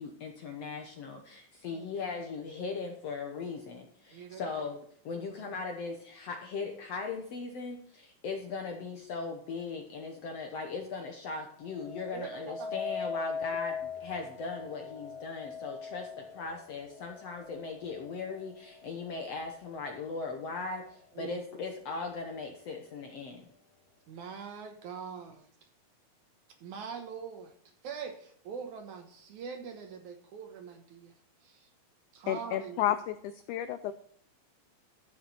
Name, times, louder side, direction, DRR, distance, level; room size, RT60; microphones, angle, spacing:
voice 1, 0.0-4.8 5.0-23.5, left 4 dB, 65° left, 3 dB, 1.6 m, -39 dB
voice 2, 4.1-4.5 5.1-5.3 12.1-12.7 21.1-21.4 24.1-25.5 26.6-27.5 27.8-31.1 31.4-31.7 32.1-33.0, right 6 dB, 65° right, 5 dB, 2.2 m, -43 dB
sound 1, 11.7-20.8 21.4-21.8, left 5 dB, 50° left, 1.1 m, -41 dB
voice 3, 32.3-33.9, left 12 dB, 85° left, 11 dB, 1.7 m, -31 dB
13.5 x 6.6 x 4.1 m, 0.62 s
omnidirectional pair, 4.2 m